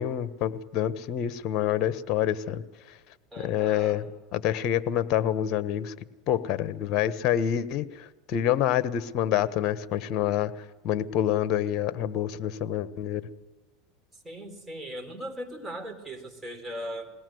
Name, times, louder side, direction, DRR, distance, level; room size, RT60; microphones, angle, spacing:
voice 1, 0.0-2.6 3.4-4.0 4.3-5.9 6.3-13.3, left 11 dB, 50° left, 13 dB, 1.2 m, -27 dB
voice 2, 3.3-4.0 14.2-17.1, equal, 15° right, 4 dB, 4.0 m, -38 dB
21.5 x 18.0 x 7.9 m, 1.2 s
supercardioid pair, 105°, 0 cm